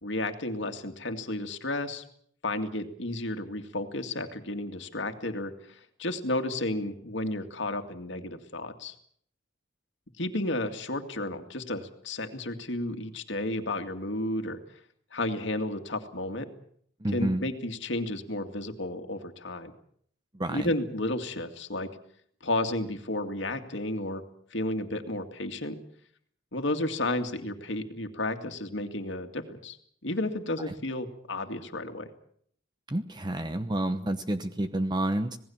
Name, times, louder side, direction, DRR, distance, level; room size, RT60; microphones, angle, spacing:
voice 1, 0.0-2.0 2.4-8.9 10.2-14.6 15.1-16.5 17.1-19.7 20.5-21.9 22.4-24.2 24.5-25.7 26.5-29.8 30.0-32.1, left 1 dB, 65° left, 6 dB, 2.3 m, -32 dB
voice 2, 17.0-17.4 20.3-20.7 32.9-35.4, right 1 dB, 20° right, 9 dB, 0.9 m, -29 dB
26.5 x 18.5 x 7.2 m, 0.64 s
head